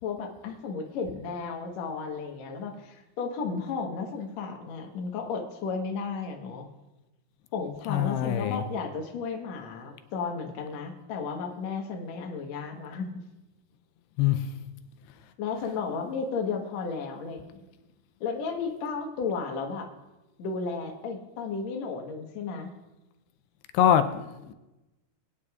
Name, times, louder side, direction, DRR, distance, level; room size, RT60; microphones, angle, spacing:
voice 1, 0.0-6.7 7.5-13.1 15.4-17.6 18.2-19.9 20.4-22.7, left 5 dB, 65° left, 1 dB, 1.7 m, -33 dB
voice 2, 7.9-8.6 14.2-14.4 23.7-24.5, left 10 dB, 85° left, 9 dB, 2.7 m, -24 dB
22.0 x 9.6 x 2.4 m, 1.0 s
omnidirectional pair, 4.9 m